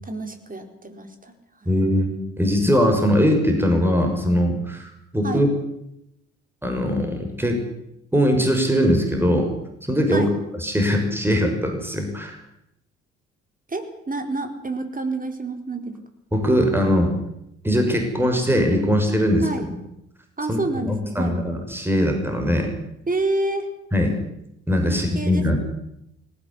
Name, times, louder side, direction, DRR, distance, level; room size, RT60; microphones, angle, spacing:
voice 1, 0.0-1.7 5.2-5.4 10.1-10.3 13.7-16.0 19.4-19.7 20.4-21.4 23.1-23.7 24.8-25.6, right 2 dB, 25° right, 6 dB, 4.5 m, -28 dB
voice 2, 1.7-2.1 2.4-5.5 6.6-7.6 8.1-9.5 9.8-10.3 10.6-12.4 16.3-17.1 17.6-19.4 20.5-20.6 20.9-22.7 23.9-24.2 24.7-25.6, equal, 5° right, 3 dB, 6.0 m, -21 dB
18.5 x 18.0 x 9.9 m, 0.81 s
hypercardioid pair, 50°, 34 cm